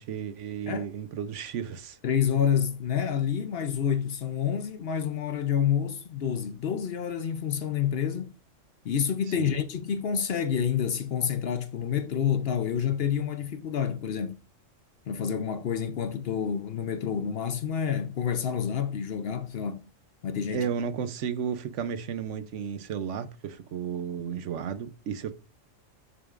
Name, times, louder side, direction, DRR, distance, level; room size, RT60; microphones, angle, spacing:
voice 1, 0.0-2.0 9.4-9.5 20.5-25.3, right 7 dB, 70° right, 1.0 m, -33 dB
voice 2, 2.0-8.3 8.8-14.4 15.1-19.8 20.2-20.6, left 8 dB, 55° left, 0.8 m, -28 dB
8.7 x 6.9 x 2.5 m
omnidirectional pair, 1.3 m